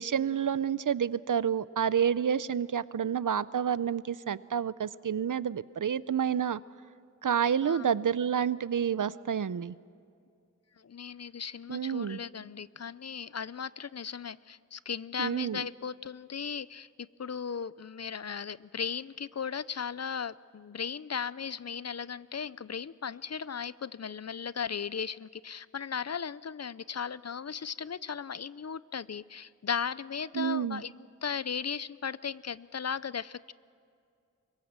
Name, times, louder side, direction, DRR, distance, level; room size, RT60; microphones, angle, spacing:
voice 1, 0.0-6.6 7.2-9.7 11.7-12.2 15.2-15.7 30.3-30.8, right 8 dB, 85° right, 18 dB, 0.5 m, -29 dB
voice 2, 7.6-7.9 10.8-33.5, left 6 dB, 55° left, 19 dB, 0.5 m, -37 dB
25.0 x 22.0 x 7.4 m, 2.4 s
wide cardioid pair, 55°, 31 cm